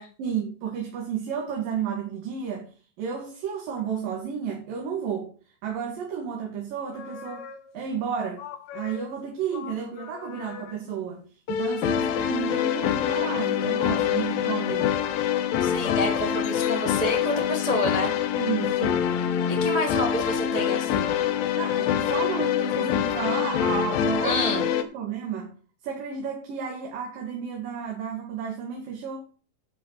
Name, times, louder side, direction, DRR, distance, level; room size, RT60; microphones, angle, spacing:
voice 1, 0.2-2.7 3.0-5.3 5.6-7.5 7.7-8.5 8.7-11.2 11.5-15.0 18.3-19.1 21.6-24.6 24.9-25.5 25.8-29.3, right 7 dB, 75° right, 0 dB, 4.0 m, -32 dB
sound 1, 6.8-7.9 8.4-10.9 15.6-17.0, left 8 dB, 70° left, 1.9 m, -42 dB
sound 2, 11.5-24.8, left 9 dB, 90° left, 2.8 m, -25 dB
voice 2, 15.6-18.1 19.5-21.1 24.2-24.6, left 1 dB, 35° right, 2 dB, 0.6 m, -28 dB
12.0 x 5.3 x 7.6 m, 0.38 s
omnidirectional pair, 4.0 m